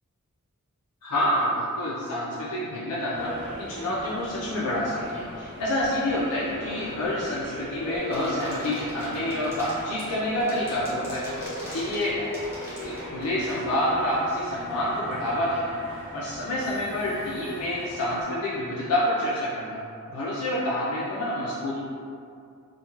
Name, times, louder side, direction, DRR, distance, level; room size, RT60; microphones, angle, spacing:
voice 1, 1.0-3.3 3.6-11.2 11.7-12.3 12.8-15.8 16.1-19.8 20.1-21.9, left 1 dB, 90° left, -7 dB, 0.5 m, -28 dB
sound 1, 3.1-18.2, equal, 55° right, 0.6 m, -40 dB
sound 2, 8.1-13.7, equal, 10° right, 0.7 m, -42 dB
2.3 x 2.2 x 2.9 m, 2.4 s
head